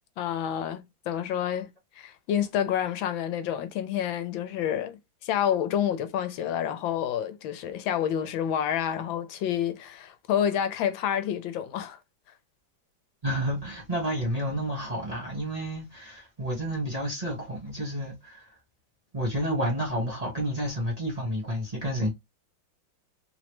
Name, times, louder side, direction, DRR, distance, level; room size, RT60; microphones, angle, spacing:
voice 1, 0.2-1.7 2.0-12.0, left 9 dB, 80° left, 1.4 m, -29 dB
voice 2, 13.2-18.6 19.1-22.1, equal, 20° right, 1.2 m, -30 dB
3.7 x 3.0 x 3.0 m
omnidirectional pair, 2.1 m